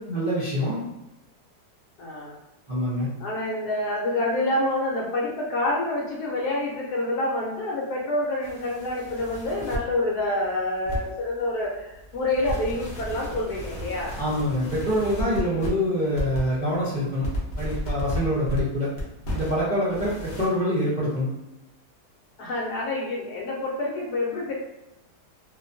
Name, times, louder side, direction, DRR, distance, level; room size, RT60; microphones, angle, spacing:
voice 1, 0.1-0.8 2.7-3.1 14.2-17.3 17.6-18.9 19.3-21.3, equal, 45° right, -11 dB, 0.6 m, -25 dB
voice 2, 2.0-2.4 3.2-14.1 22.4-24.5, left 1 dB, 70° left, -3 dB, 1.1 m, -27 dB
sound 1, 8.4-9.8 10.9-11.3 11.6-15.7 16.1-16.7 17.0-18.6 18.9-19.6 19.9-20.5, equal, 55° left, 0.8 m, -33 dB
2.8 x 2.2 x 2.5 m, 0.93 s
omnidirectional pair, 1.9 m